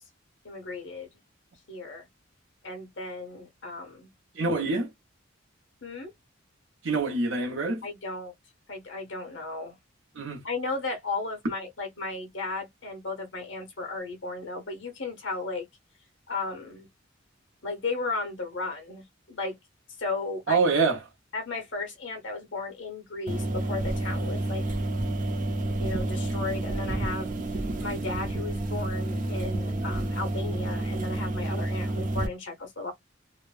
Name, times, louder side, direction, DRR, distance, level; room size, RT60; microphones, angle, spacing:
voice 1, 0.4-1.1 1.7-2.1 2.6-4.1 5.8-6.1 7.8-8.3 8.7-9.8 10.4-15.7 16.3-16.9 17.6-19.6 20.0-20.6 21.3-24.6 25.8-27.3 27.8-32.9, left 3 dB, 65° left, 1.1 m, -35 dB
voice 2, 4.3-4.9 6.8-7.8 10.1-10.4 20.5-21.0, right 3 dB, 75° right, 0.9 m, -25 dB
sound 1, 23.3-32.3, right 1 dB, 40° right, 0.6 m, -30 dB
2.9 x 2.2 x 2.4 m
head